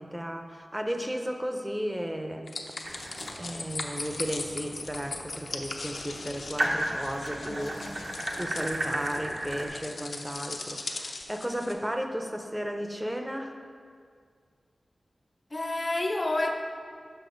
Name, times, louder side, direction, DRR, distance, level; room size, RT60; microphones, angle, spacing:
voice 1, 0.0-2.5 3.4-13.5, equal, 10° right, 5 dB, 0.5 m, -34 dB
sound 1, 2.5-11.7, left 3 dB, 80° left, 0.5 m, -39 dB
sound 2, 2.8-9.7, right 1 dB, 55° right, 0.7 m, -35 dB
voice 2, 7.4-8.0 15.5-16.5, left 2 dB, 35° left, 4 dB, 0.6 m, -30 dB
6.7 x 5.6 x 3.8 m, 2.1 s
wide cardioid pair, 85°, 0 cm